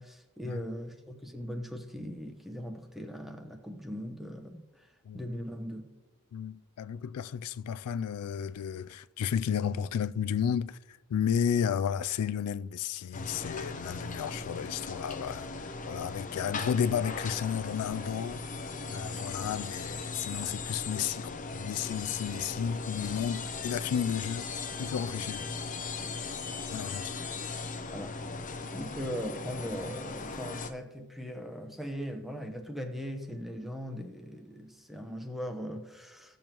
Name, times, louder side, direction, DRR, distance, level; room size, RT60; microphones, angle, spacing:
voice 1, 0.0-5.9 27.9-28.2 28.7-36.4, equal, ahead, 0.9 m, -39 dB
voice 2, 6.3-24.5 24.8-25.5 26.5-27.2, left 8 dB, 85° left, 0.3 m, -33 dB
sound 1, 13.1-30.7, left 4 dB, 35° left, 0.7 m, -38 dB
16.5 x 6.9 x 3.0 m
head